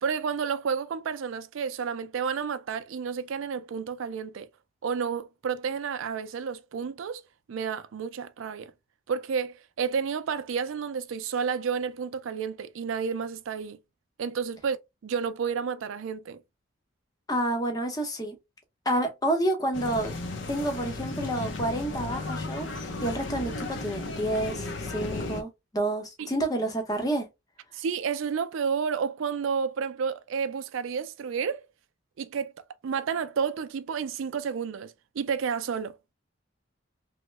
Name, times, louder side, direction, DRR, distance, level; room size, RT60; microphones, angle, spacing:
voice 1, 0.0-4.5 4.8-7.2 7.5-8.7 9.1-13.8 14.2-14.8 15.0-16.4 26.2-26.3 27.7-31.6 32.2-32.5 32.8-36.0, right 6 dB, 85° right, 0.4 m, -31 dB
voice 2, 17.3-18.4 18.9-20.1 20.5-27.3, right 1 dB, 20° left, 0.7 m, -29 dB
sound 1, 19.7-25.4, left 2 dB, 65° left, 0.6 m, -35 dB
3.0 x 2.1 x 3.1 m
head